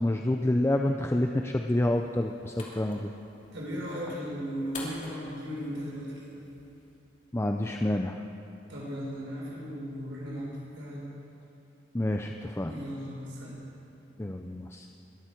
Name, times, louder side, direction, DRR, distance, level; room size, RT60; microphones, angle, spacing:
voice 1, 0.0-3.1 7.3-8.2 11.9-12.7 14.2-14.9, left 1 dB, 15° left, 4 dB, 0.5 m, -28 dB
sound 1, 1.9-6.9, left 2 dB, 40° left, 2.6 m, -48 dB
voice 2, 3.5-6.4 8.7-10.5 10.7-11.0 12.7-13.6, equal, 80° right, -4 dB, 4.1 m, -36 dB
22.0 x 13.0 x 4.5 m, 2.8 s
head